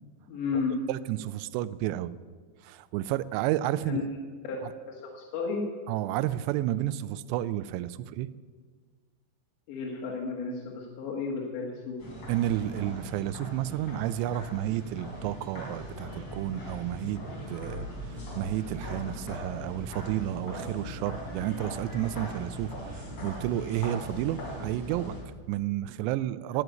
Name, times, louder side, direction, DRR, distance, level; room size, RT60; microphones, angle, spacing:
voice 1, 0.3-0.8 3.9-4.0 4.5-4.6 4.9-5.6 9.7-12.0, left 5 dB, 75° left, -2 dB, 3.7 m, -32 dB
voice 2, 0.9-2.1 2.6-4.0 4.6-4.7 5.9-8.3 12.3-17.2 17.5-26.6, right 13 dB, 85° right, 14 dB, 2.6 m, -31 dB
sound 1, 12.0-25.2, left 1 dB, 40° left, 4.0 m, -40 dB
12.0 x 7.9 x 9.2 m, 1.5 s
omnidirectional pair, 5.2 m